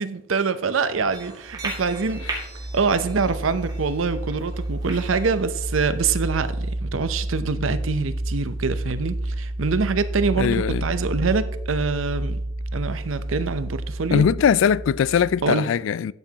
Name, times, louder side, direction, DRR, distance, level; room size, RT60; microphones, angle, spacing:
voice 1, 0.0-2.2 2.7-12.4 12.7-14.2 15.4-15.7, right 4 dB, 90° right, 0.7 m, -25 dB
sound 1, 1.0-15.5, right 1 dB, ahead, 3.3 m, -30 dB
sound 2, 1.1-6.1, right 2 dB, 20° right, 2.0 m, -38 dB
voice 2, 10.4-10.8 14.1-16.1, left 7 dB, 75° left, 0.3 m, -20 dB
11.5 x 8.2 x 2.9 m
head